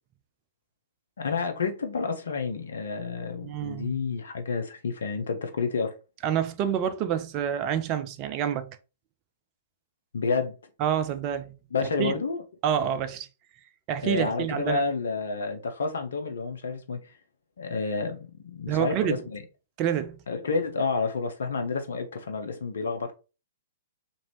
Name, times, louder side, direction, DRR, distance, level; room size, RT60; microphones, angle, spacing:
voice 1, 1.2-5.9 10.1-10.6 11.7-12.4 14.0-17.2 17.6-19.4 20.3-23.1, left 4 dB, 65° left, 0.5 m, -30 dB
voice 2, 3.4-3.9 6.2-8.8 10.8-11.6 12.0-12.1 12.6-13.3 13.9-14.8 18.7-19.2 19.8-20.2, right 9 dB, 35° right, 0.5 m, -27 dB
3.0 x 2.6 x 2.9 m
figure-of-eight pair, 110°, 0 cm